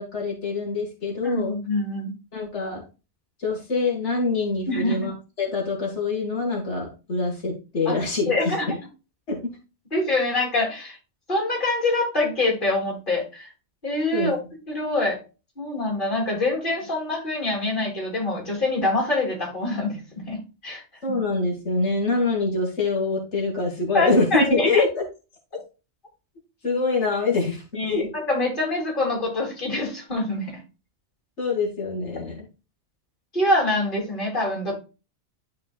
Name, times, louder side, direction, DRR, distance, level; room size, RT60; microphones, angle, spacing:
voice 1, 0.0-1.6 2.3-2.8 3.4-5.1 5.4-8.3 8.7-8.8 9.3-9.4 14.1-14.3 21.0-25.0 26.6-28.1 31.4-32.5, left 3 dB, 90° left, -2 dB, 2.4 m, -25 dB
voice 2, 1.2-2.1 4.7-5.0 7.8-7.9 8.3-8.6 9.9-11.0 11.3-13.5 13.8-14.4 14.7-15.2 15.6-20.0 20.3-20.4 20.6-20.8 21.1-21.2 23.9-24.8 27.7-30.6 33.3-34.8, left 2 dB, 50° left, -1 dB, 3.2 m, -25 dB
12.0 x 4.7 x 2.4 m, 0.31 s
omnidirectional pair, 1.1 m